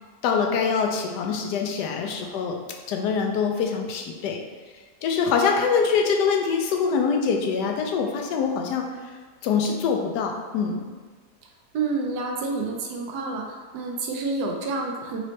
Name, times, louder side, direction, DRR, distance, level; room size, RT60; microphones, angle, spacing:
voice 1, 0.2-2.6 2.9-4.4 5.0-8.9 9.4-10.8, left 5 dB, 90° left, 2 dB, 1.2 m, -24 dB
voice 2, 11.7-15.2, right 3 dB, 85° right, 1 dB, 1.2 m, -29 dB
4.1 x 2.7 x 3.1 m, 1.5 s
omnidirectional pair, 1.7 m